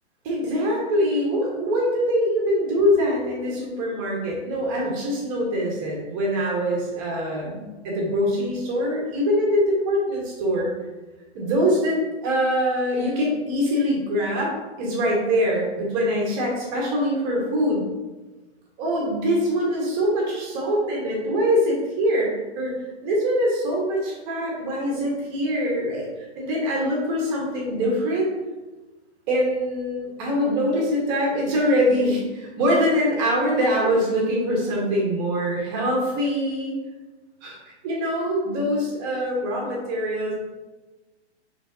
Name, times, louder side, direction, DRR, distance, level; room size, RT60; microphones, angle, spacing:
voice 1, 0.2-10.7 11.3-14.5 14.8-17.9 18.8-22.7 23.0-28.3 29.3-36.7 37.4-37.5 37.8-40.3, equal, 20° right, -3 dB, 1.1 m, -23 dB
10.0 x 3.5 x 2.7 m, 1.2 s
hypercardioid pair, 170°, 34 cm